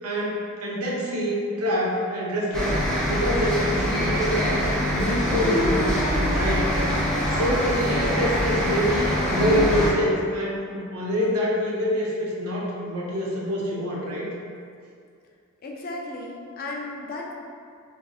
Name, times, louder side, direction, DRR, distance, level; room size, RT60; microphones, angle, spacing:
voice 1, 0.0-2.8 3.0-6.7 7.3-14.3, equal, 80° right, -4 dB, 0.7 m, -26 dB
sound 1, 2.5-9.9, equal, 5° left, 0.8 m, -24 dB
voice 2, 15.6-17.3, left 2 dB, 40° left, -1 dB, 0.4 m, -34 dB
3.4 x 2.6 x 2.3 m, 2.3 s
head